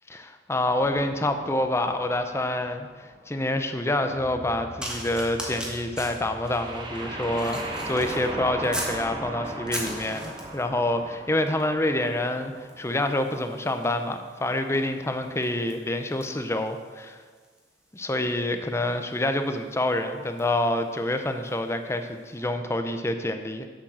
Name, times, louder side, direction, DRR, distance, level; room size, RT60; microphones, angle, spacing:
voice 1, 0.1-17.2 17.9-23.7, left 1 dB, 15° left, 7 dB, 0.6 m, -27 dB
sound 1, 0.7-3.6 6.3-13.2, right 1 dB, 25° right, 1.2 m, -38 dB
sound 2, 4.1-9.4, equal, 50° left, 1.9 m, -46 dB
sound 3, 4.8-9.0 9.4-10.7 11.5-11.7 12.0-21.7 22.4-22.5, right 1 dB, 5° right, 1.4 m, -40 dB
7.4 x 7.2 x 6.2 m, 1.5 s
head